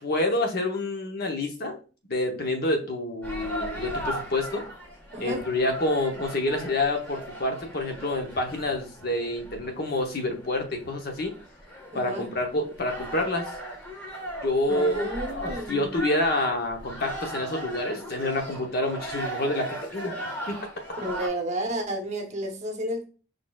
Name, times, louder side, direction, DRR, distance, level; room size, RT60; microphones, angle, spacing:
voice 1, 0.0-1.8 2.1-4.6 5.2-11.3 11.9-13.5 14.4-20.1 20.5-20.6, left 2 dB, 55° left, 0.9 m, -28 dB
sound 1, 3.2-21.3, right 1 dB, 10° left, 1.7 m, -38 dB
voice 2, 5.1-5.4 11.9-12.3 14.7-16.0 21.0-23.0, right 1 dB, 40° right, 0.9 m, -32 dB
4.9 x 4.2 x 2.3 m
head